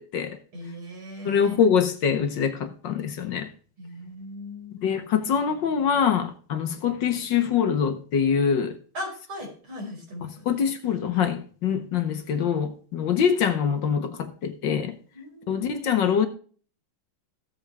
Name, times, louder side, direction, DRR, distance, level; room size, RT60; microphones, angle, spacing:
voice 1, 0.0-0.4 1.2-3.5 4.8-8.7 10.5-15.0 15.5-16.3, left 7 dB, 65° left, 1.5 m, -24 dB
voice 2, 0.5-1.6 3.8-5.0 8.9-10.4 15.1-15.7, left 1 dB, 70° right, 5.8 m, -38 dB
15.0 x 8.2 x 3.4 m
omnidirectional pair, 2.4 m